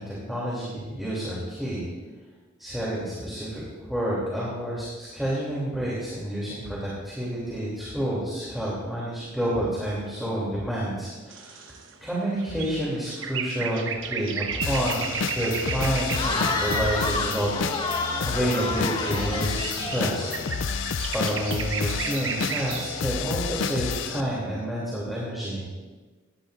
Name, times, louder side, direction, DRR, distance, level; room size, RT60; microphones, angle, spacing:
voice 1, 0.0-1.8 2.6-3.6 3.9-11.7 12.0-15.0 15.3-20.7 21.1-25.6, right 1 dB, ahead, -7 dB, 3.0 m, -29 dB
sound 1, 11.3-16.6 16.9-23.3, right 6 dB, 70° right, 1.1 m, -34 dB
sound 2, 14.6-24.2, left 6 dB, 65° left, 0.5 m, -30 dB
Cheering / Crowd, 16.1-20.7, left 2 dB, 25° left, 1.4 m, -30 dB
19.5 x 17.0 x 2.6 m, 1.3 s
head